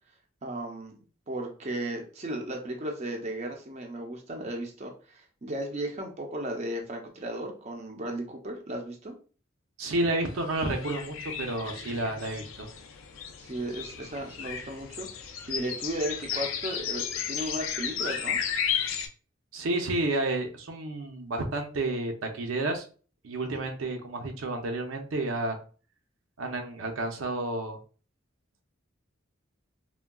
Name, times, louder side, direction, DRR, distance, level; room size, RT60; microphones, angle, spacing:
voice 1, 0.4-1.0 1.3-9.1 13.4-18.4 23.5-23.7, right 1 dB, 35° right, 2 dB, 0.5 m, -35 dB
voice 2, 9.8-12.7 19.5-22.8 23.2-25.6 26.4-27.8, right 2 dB, 80° right, 3 dB, 0.6 m, -30 dB
sound 1, 10.3-19.1, left 7 dB, 75° left, 0.4 m, -34 dB
3.4 x 2.2 x 2.2 m, 0.39 s
head